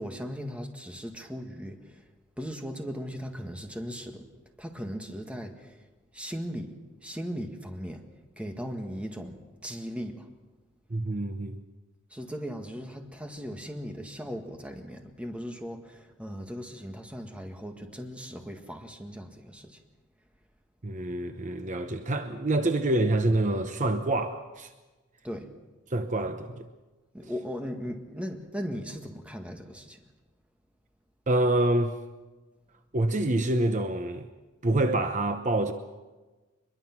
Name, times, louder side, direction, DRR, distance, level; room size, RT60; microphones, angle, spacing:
voice 1, 0.0-2.1 2.4-4.3 4.6-5.8 6.1-8.1 8.4-10.3 12.1-19.8 25.2-25.5 27.1-30.0, equal, 5° right, 1.7 m, -38 dB
voice 2, 10.9-11.6 20.8-24.7 25.9-26.7 31.3-31.9 32.9-34.3 34.6-35.7, right 1 dB, 40° right, 0.9 m, -26 dB
24.0 x 22.0 x 6.0 m
head